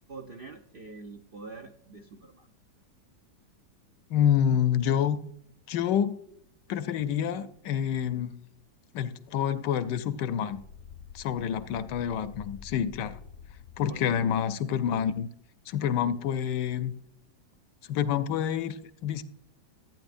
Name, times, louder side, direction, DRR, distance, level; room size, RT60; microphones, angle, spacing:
voice 1, 0.1-2.5 13.9-14.2, right 3 dB, 80° right, 0.5 m, -45 dB
voice 2, 4.1-5.2 5.7-6.2 6.7-8.3 8.9-10.6 11.1-13.2 13.8-15.3 15.7-16.9 17.9-19.2, left 9 dB, 75° left, 1.2 m, -27 dB
sound 1, 10.5-15.1, left 7 dB, 60° left, 0.8 m, -49 dB
15.0 x 9.1 x 2.5 m
omnidirectional pair, 1.9 m